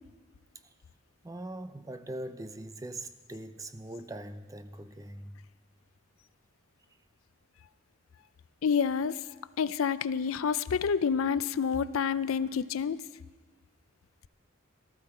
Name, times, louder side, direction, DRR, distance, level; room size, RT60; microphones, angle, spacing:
voice 1, 1.2-5.4, right 1 dB, 15° right, 0.5 m, -41 dB
voice 2, 8.6-9.2 9.6-13.0, left 6 dB, 85° left, 0.4 m, -28 dB
18.5 x 13.0 x 4.3 m
head